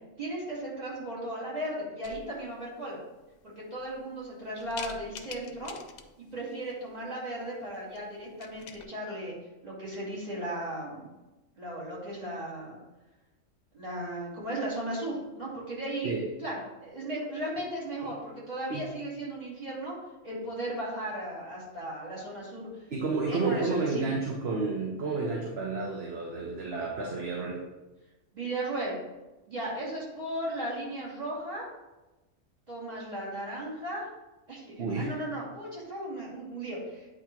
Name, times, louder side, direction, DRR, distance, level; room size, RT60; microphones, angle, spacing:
voice 1, 0.2-3.0 3.4-5.8 6.3-9.4 9.6-11.1 11.6-12.8 13.7-16.1 16.4-20.0 20.2-22.9 23.3-24.1 28.3-28.9 29.5-31.6 32.7-34.1 34.5-37.1, right 1 dB, 30° right, -7 dB, 2.5 m, -36 dB
sound 1, 2.0-2.6 3.2-3.3 3.8-4.2 4.6-6.3 7.7-8.0 8.2-8.8, left 7 dB, 85° left, 1.0 m, -45 dB
voice 2, 22.9-27.6 34.8-35.2, right 3 dB, 55° right, -2 dB, 1.1 m, -31 dB
8.8 x 3.0 x 4.4 m, 1.1 s
omnidirectional pair, 1.4 m